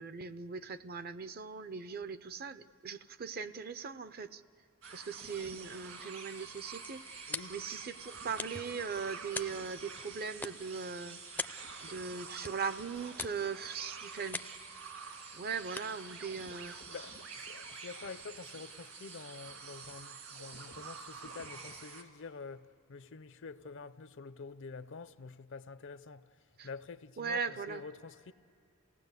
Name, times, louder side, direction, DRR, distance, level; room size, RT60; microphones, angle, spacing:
voice 1, 0.0-4.4 4.9-14.4 15.3-16.8 26.6-26.7 27.2-27.8, right 5 dB, 45° right, 0.6 m, -40 dB
sound 1, 4.8-22.0, right 5 dB, 65° right, 2.1 m, -48 dB
sound 2, 6.2-17.5, left 3 dB, 10° left, 0.4 m, -47 dB
voice 2, 7.3-7.6 16.9-26.3 26.6-28.3, left 4 dB, 60° left, 0.6 m, -47 dB
28.0 x 17.5 x 8.2 m
head